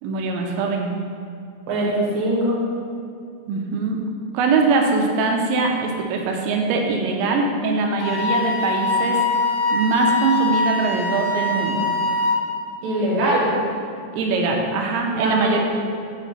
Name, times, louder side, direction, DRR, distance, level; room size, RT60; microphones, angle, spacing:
voice 1, 0.0-0.9 3.5-4.0 4.3-9.2 9.7-11.9 14.1-15.6, right 3 dB, 85° right, 1 dB, 2.9 m, -22 dB
voice 2, 1.7-2.6 12.8-13.5 15.1-15.5, right 1 dB, 70° right, -5 dB, 1.6 m, -22 dB
Wind instrument woodwind instrument, 8.0-12.5, left 2 dB, 85° left, 2.8 m, -22 dB
7.2 x 3.3 x 5.2 m, 2.3 s
omnidirectional pair, 5.2 m